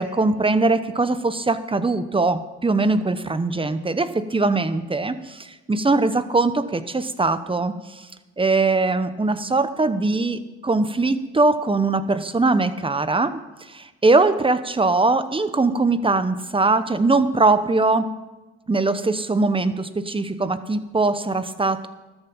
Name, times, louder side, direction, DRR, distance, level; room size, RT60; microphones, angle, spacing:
voice 1, 0.0-8.1 8.4-13.4 13.7-18.1 18.7-21.9, right 3 dB, 15° right, 12 dB, 1.0 m, -21 dB
13.0 x 9.5 x 7.2 m, 1.1 s
cardioid pair, 90°, 30 cm